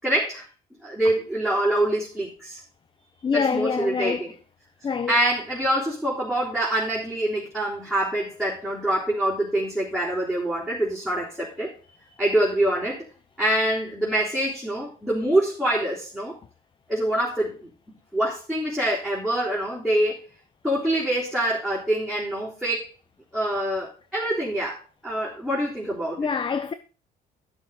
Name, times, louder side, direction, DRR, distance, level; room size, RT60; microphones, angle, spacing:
voice 1, 0.0-0.4 0.8-2.6 3.3-4.3 5.1-11.7 12.2-13.0 13.4-16.4 16.9-20.3 20.6-22.9 23.3-26.3, right 1 dB, ahead, 3.8 m, -25 dB
voice 2, 3.2-4.2 4.8-5.2 26.2-26.7, left 5 dB, 30° left, 0.7 m, -25 dB
12.0 x 6.4 x 5.2 m
cardioid pair, 110°, 17 cm